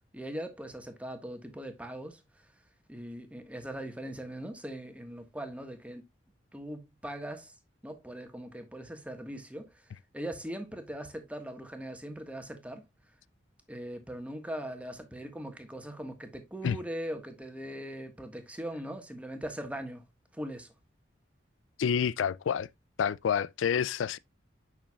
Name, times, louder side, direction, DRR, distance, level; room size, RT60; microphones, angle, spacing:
voice 1, 0.1-2.2 2.9-6.0 6.5-7.5 7.8-9.9 10.1-12.8 13.7-20.0 20.3-20.7, right 1 dB, 5° right, 1.4 m, -40 dB
voice 2, 21.8-22.7 23.0-24.2, left 7 dB, 85° left, 0.4 m, -28 dB
9.1 x 6.3 x 2.3 m
head